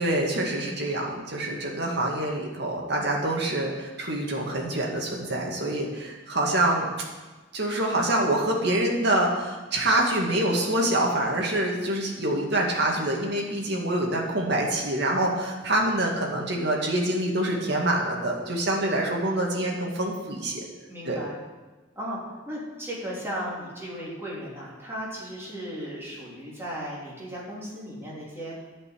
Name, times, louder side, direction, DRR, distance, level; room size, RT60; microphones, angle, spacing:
voice 1, 0.0-6.9 7.5-20.6 21.1-21.2, right 1 dB, 60° right, -1 dB, 2.2 m, -26 dB
voice 2, 20.9-21.4 21.9-22.2 22.5-28.6, equal, 15° right, -6 dB, 3.3 m, -36 dB
10.5 x 5.6 x 8.7 m, 1.2 s
head